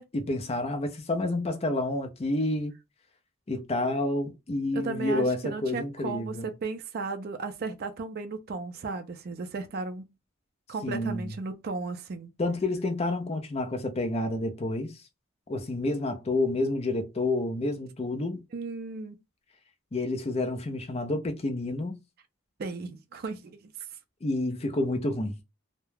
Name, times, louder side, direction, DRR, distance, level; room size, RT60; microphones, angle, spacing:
voice 1, 0.1-2.7 3.5-6.5 10.8-11.3 12.4-15.0 15.5-18.4 19.9-22.0 24.2-25.4, left 2 dB, 30° left, 0.4 m, -29 dB
voice 2, 4.7-10.1 10.7-12.3 18.5-19.2 22.6-23.7, right 4 dB, 45° right, 0.4 m, -35 dB
2.3 x 2.1 x 3.1 m
head